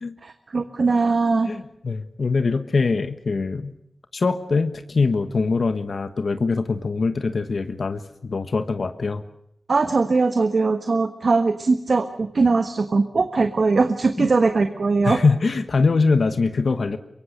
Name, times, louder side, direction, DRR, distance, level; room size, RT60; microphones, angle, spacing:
voice 1, 0.2-1.5 9.7-15.2, right 3 dB, 65° right, 8 dB, 1.3 m, -20 dB
voice 2, 1.4-3.7 4.1-9.2 14.2-14.3 15.0-17.0, left 4 dB, 65° left, 9 dB, 1.2 m, -23 dB
24.0 x 23.0 x 6.6 m, 0.78 s
wide cardioid pair, 95°, 0 cm